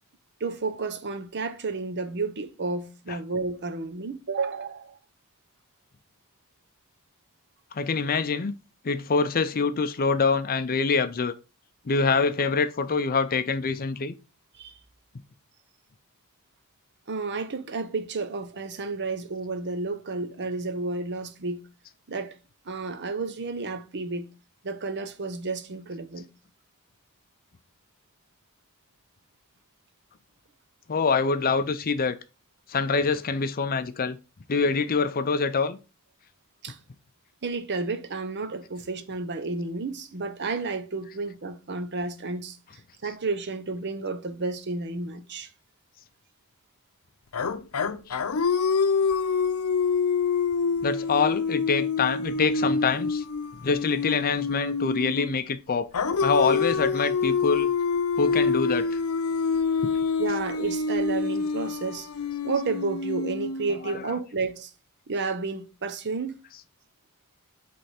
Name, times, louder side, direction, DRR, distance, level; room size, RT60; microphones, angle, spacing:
voice 1, 0.4-5.0 14.5-14.8 17.1-21.6 22.1-22.4 22.7-24.3 24.6-26.3 36.6-36.8 37.4-42.6 43.0-45.5 60.2-62.1 62.4-64.7 65.1-66.4, right 3 dB, 55° right, 0.8 m, -31 dB
voice 2, 7.7-8.5 8.8-11.3 11.9-14.1 30.9-32.2 32.7-34.2 34.5-35.8 43.0-43.1 48.1-48.2 50.8-53.2 53.6-55.9 56.2-57.7 58.2-59.0 59.8-59.9 60.3-60.4 63.8-64.2 66.5-66.6, left 4 dB, 45° left, 0.5 m, -25 dB
sound 1, 47.3-55.4 55.9-64.0, left 5 dB, 90° left, 0.6 m, -26 dB
8.0 x 3.4 x 4.3 m
head